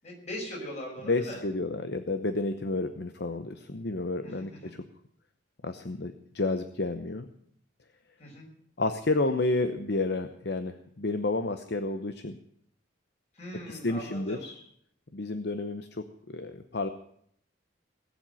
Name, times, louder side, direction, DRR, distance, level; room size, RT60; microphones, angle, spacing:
voice 1, 0.0-1.4 4.2-4.8 8.2-8.5 13.3-14.5, equal, 35° left, -1 dB, 5.7 m, -40 dB
voice 2, 1.0-4.8 5.6-7.3 8.8-12.4 13.7-14.6 15.1-16.9, left 2 dB, 55° left, 9 dB, 0.8 m, -31 dB
19.5 x 7.5 x 9.0 m, 0.68 s
head